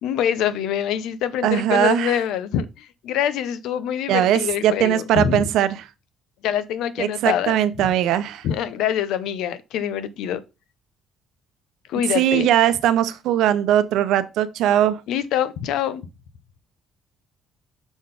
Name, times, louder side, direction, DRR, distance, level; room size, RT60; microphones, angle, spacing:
voice 1, 0.0-5.4 6.4-7.9 8.4-10.4 11.9-12.5 15.1-16.1, left 9 dB, 80° left, 0.7 m, -25 dB
voice 2, 1.4-2.1 4.1-5.8 7.0-8.5 12.1-15.0, right 11 dB, 80° right, 0.7 m, -20 dB
6.1 x 3.9 x 5.1 m
cardioid pair, 170°, 0 cm